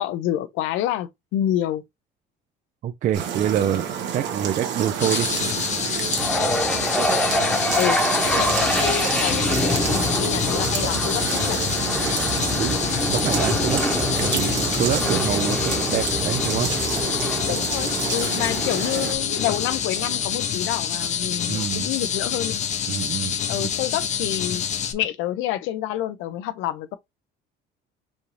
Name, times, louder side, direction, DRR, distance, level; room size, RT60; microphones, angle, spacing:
voice 1, 0.0-1.8 7.7-11.6 17.5-22.5 23.5-24.6 24.9-27.0, left 12 dB, 85° left, 0.7 m, -28 dB
voice 2, 2.8-3.8 4.1-5.3 12.6-12.8 13.1-13.8 14.2-16.7 21.5-21.9 22.9-23.3, right 10 dB, 40° right, 0.4 m, -26 dB
sound 1, 3.1-19.1, right 8 dB, 65° right, 1.4 m, -30 dB
sound 2, 5.0-24.9, left 8 dB, 35° left, 0.6 m, -27 dB
sound 3, 6.1-20.3, left 1 dB, 5° left, 1.0 m, -26 dB
5.2 x 2.6 x 3.2 m
cardioid pair, 155°, 20 cm